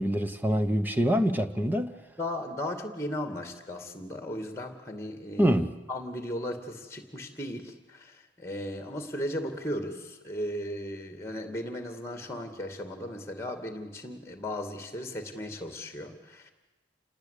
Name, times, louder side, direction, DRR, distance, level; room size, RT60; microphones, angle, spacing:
voice 1, 0.0-1.9 5.4-5.7, equal, 10° right, 1.1 m, -25 dB
voice 2, 2.2-5.6 5.9-16.5, left 1 dB, 15° left, 2.4 m, -36 dB
28.0 x 19.5 x 8.4 m
head